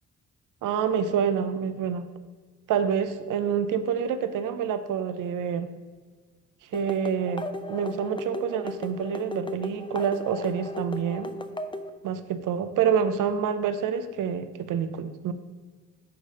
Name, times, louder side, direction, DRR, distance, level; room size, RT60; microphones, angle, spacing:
voice 1, 0.6-2.0 2.7-5.7 6.7-11.3 12.0-15.3, right 7 dB, 80° right, 10 dB, 0.6 m, -27 dB
sound 1, 6.7-11.9, left 2 dB, 15° left, 0.6 m, -36 dB
9.3 x 3.2 x 5.3 m, 1.4 s
supercardioid pair, 50°, 31 cm